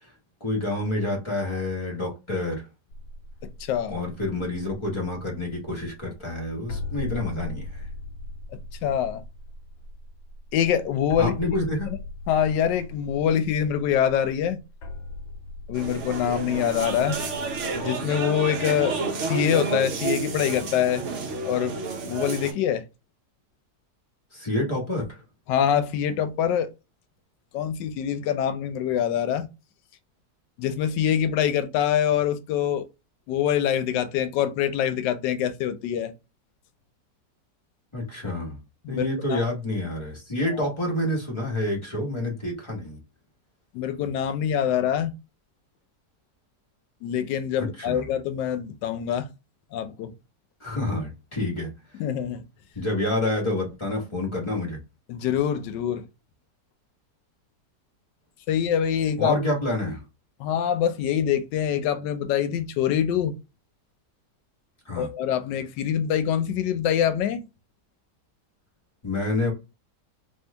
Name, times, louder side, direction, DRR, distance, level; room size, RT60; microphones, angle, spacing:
voice 1, 0.4-2.7 3.9-7.9 11.2-11.9 24.3-25.2 37.9-38.6 38.9-43.0 47.6-48.0 50.6-51.7 52.7-54.8 59.2-60.0 64.9-65.1 69.0-69.5, left 1 dB, 20° left, 0.8 m, -28 dB
sound 1, 2.9-17.8, left 2 dB, 60° left, 1.3 m, -39 dB
voice 2, 3.6-4.0 8.8-9.2 10.5-11.5 12.3-14.6 15.7-17.2 17.7-19.0 19.2-21.0 21.4-22.8 25.5-26.7 27.5-29.5 30.6-32.9 33.3-36.1 38.8-39.5 40.6-40.7 43.7-45.1 47.0-49.3 49.7-50.1 52.0-52.4 55.1-56.0 58.5-59.4 60.4-63.4 65.0-67.4, left 9 dB, 85° left, 1.2 m, -25 dB
sound 2, 15.7-22.5, right 4 dB, 55° right, 0.9 m, -30 dB
3.0 x 2.7 x 3.3 m
omnidirectional pair, 1.9 m